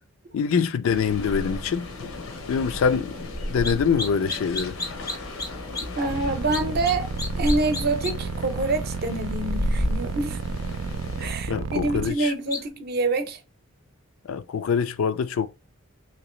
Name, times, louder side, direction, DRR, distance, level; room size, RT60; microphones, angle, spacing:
voice 1, 0.3-1.9 2.5-3.2 3.5-4.8 11.5-12.3 14.2-15.5, left 6 dB, 75° left, 0.3 m, -24 dB
sound 1, 0.8-11.3, left 1 dB, 90° left, 0.9 m, -33 dB
sound 2, 3.6-3.7 4.0-5.5 5.7-5.8 6.5-6.9 7.2-8.1 12.5-12.6, left 3 dB, 15° left, 0.5 m, -30 dB
voice 2, 6.0-7.1 7.4-10.4 11.2-13.4, right 2 dB, 50° right, 0.6 m, -26 dB
sound 3, 6.1-12.1, right 6 dB, 90° right, 0.4 m, -32 dB
3.0 x 2.8 x 3.1 m
head